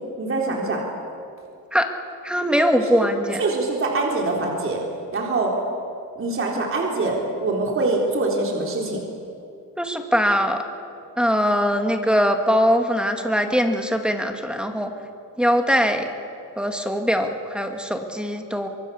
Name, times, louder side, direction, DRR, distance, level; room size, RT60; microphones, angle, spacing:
voice 1, 0.2-0.8 2.7-3.1 3.4-4.8 5.1-5.5 6.2-9.0, right 3 dB, 40° right, -1 dB, 3.9 m, -24 dB
voice 2, 2.2-3.4 9.8-10.6 11.2-14.9 15.4-16.1 16.6-18.7, equal, 5° right, 5 dB, 2.1 m, -21 dB
24.5 x 23.0 x 7.1 m, 2.6 s
cardioid pair, 115°, 34 cm